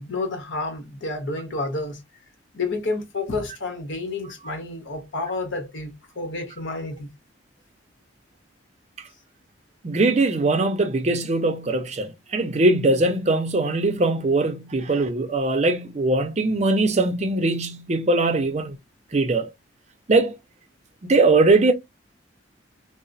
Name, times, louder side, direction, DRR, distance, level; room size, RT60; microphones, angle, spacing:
voice 1, 0.0-2.0 2.5-7.1, left 3 dB, 75° left, 1.0 m, -30 dB
voice 2, 9.8-18.8 19.1-19.5 20.1-20.3 21.0-21.7, right 2 dB, 35° right, 0.5 m, -21 dB
2.8 x 2.0 x 2.5 m
head